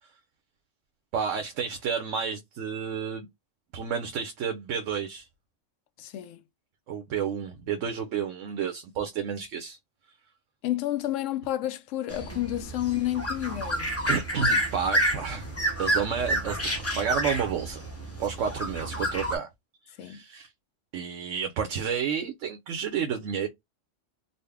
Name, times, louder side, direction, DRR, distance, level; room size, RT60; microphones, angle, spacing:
voice 1, 1.1-3.3 3.7-5.3 6.9-9.8 14.1-15.5 15.8-17.8 18.2-19.5 20.0-20.5 20.9-23.5, right 7 dB, 80° right, 1.1 m, -31 dB
voice 2, 6.0-6.4 10.6-13.9 20.0-20.2, left 14 dB, 80° left, 0.9 m, -30 dB
sound 1, 12.1-19.4, right 1 dB, 15° left, 0.7 m, -29 dB
4.0 x 2.1 x 3.4 m
omnidirectional pair, 1.3 m